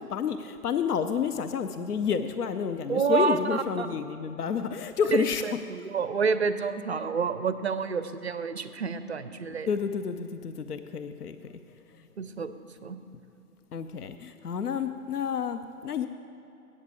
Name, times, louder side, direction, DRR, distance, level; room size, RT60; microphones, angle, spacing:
voice 1, 0.0-5.4 9.7-11.4 13.7-16.1, left 7 dB, 75° left, 9 dB, 0.6 m, -30 dB
voice 2, 2.9-3.9 5.1-9.7 12.2-12.5 12.8-13.0, right 5 dB, 45° right, 11 dB, 0.5 m, -28 dB
8.6 x 6.7 x 8.4 m, 2.9 s
figure-of-eight pair, 145°, 47 cm